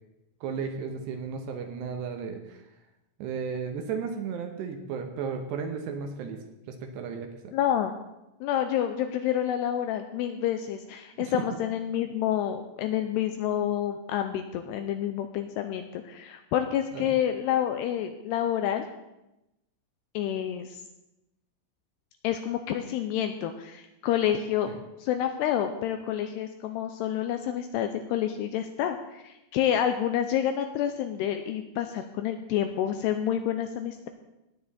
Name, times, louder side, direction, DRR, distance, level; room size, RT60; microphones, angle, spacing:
voice 1, 0.4-2.6 3.2-7.5 11.1-11.6 16.9-17.1 24.7-24.8, right 6 dB, 75° right, 5 dB, 3.0 m, -34 dB
voice 2, 7.5-8.0 8.4-18.9 20.1-20.8 22.2-24.7 25.0-34.1, left 10 dB, 85° left, 7 dB, 2.5 m, -28 dB
18.0 x 9.4 x 4.2 m, 0.92 s
omnidirectional pair, 5.3 m